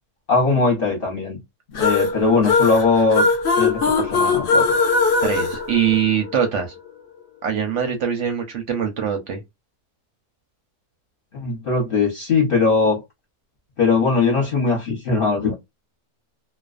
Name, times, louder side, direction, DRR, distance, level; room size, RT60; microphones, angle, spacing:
voice 1, 0.3-1.4 1.7-3.3 3.6-4.6 11.3-13.0 13.8-15.5, left 4 dB, 45° left, 0.8 m, -20 dB
sound 1, 1.8-6.5, left 4 dB, 70° left, 0.5 m, -20 dB
voice 2, 5.2-6.7 7.4-9.4, right 8 dB, 65° right, 0.8 m, -22 dB
2.4 x 2.2 x 2.4 m
omnidirectional pair, 1.6 m